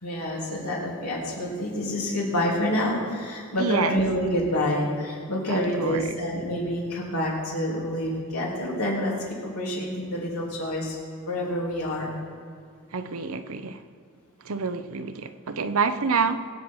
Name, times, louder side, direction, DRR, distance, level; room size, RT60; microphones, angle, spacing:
voice 1, 0.0-11.0 11.3-12.1, left 1 dB, 80° left, -3 dB, 3.5 m, -27 dB
voice 2, 3.6-4.0 5.5-6.2 12.9-13.8 14.4-16.5, right 5 dB, 70° right, 9 dB, 0.8 m, -27 dB
23.0 x 8.3 x 4.8 m, 2.3 s
head